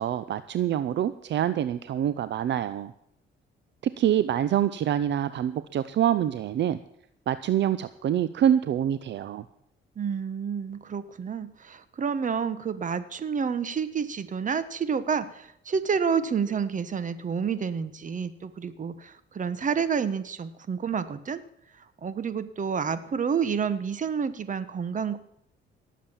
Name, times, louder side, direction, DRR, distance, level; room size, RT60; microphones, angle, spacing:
voice 1, 0.0-2.9 3.8-6.8 7.3-9.4, right 10 dB, 65° right, 14 dB, 0.6 m, -26 dB
voice 2, 10.0-21.4 22.0-25.2, right 6 dB, 40° right, 14 dB, 1.2 m, -29 dB
18.0 x 7.4 x 7.3 m, 0.74 s
cardioid pair, 90°, 20 cm